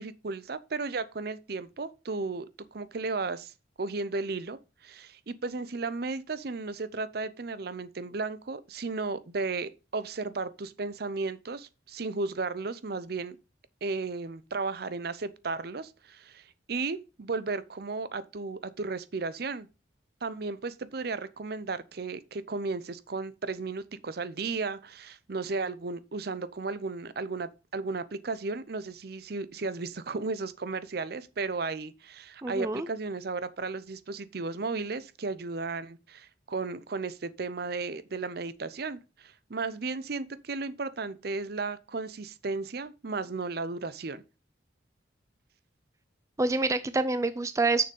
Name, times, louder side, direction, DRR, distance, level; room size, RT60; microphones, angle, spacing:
voice 1, 0.0-3.5 3.8-13.4 13.8-19.7 20.2-44.2, right 3 dB, 55° right, 0.6 m, -34 dB
voice 2, 32.4-32.9 46.4-47.8, right 3 dB, 15° right, 0.4 m, -27 dB
6.7 x 6.5 x 5.3 m
head